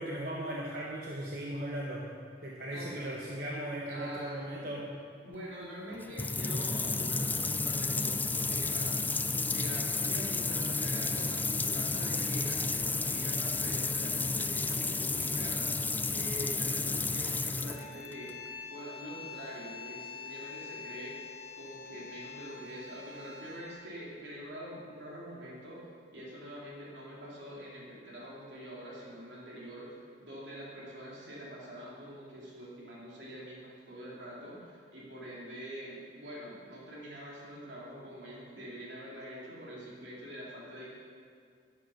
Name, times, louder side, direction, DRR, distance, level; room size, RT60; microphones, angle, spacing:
voice 1, 0.0-2.1 2.4-4.9, right 1 dB, 55° right, -3 dB, 1.2 m, -37 dB
voice 2, 2.7-3.2 3.9-4.8 5.2-15.7 16.1-18.3 18.7-21.1 21.5-25.8 26.1-40.9, equal, 80° right, -5 dB, 3.1 m, -45 dB
sound 1, 5.9-18.3, left 3 dB, 10° left, 0.3 m, -32 dB
sound 2, 17.6-23.8, left 6 dB, 30° left, 2.9 m, -46 dB
11.5 x 9.6 x 6.4 m, 2.2 s
head